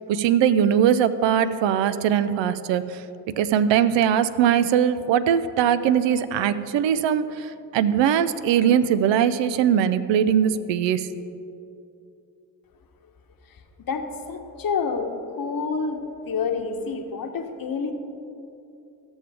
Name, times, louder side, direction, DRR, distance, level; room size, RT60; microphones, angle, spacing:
voice 1, 0.1-3.0 3.4-11.1, right 9 dB, 70° right, 13 dB, 0.6 m, -21 dB
voice 2, 13.9-15.1 15.4-17.9, left 5 dB, 50° left, 5 dB, 1.1 m, -28 dB
14.0 x 7.0 x 3.4 m, 2.8 s
hypercardioid pair, 40°, 46 cm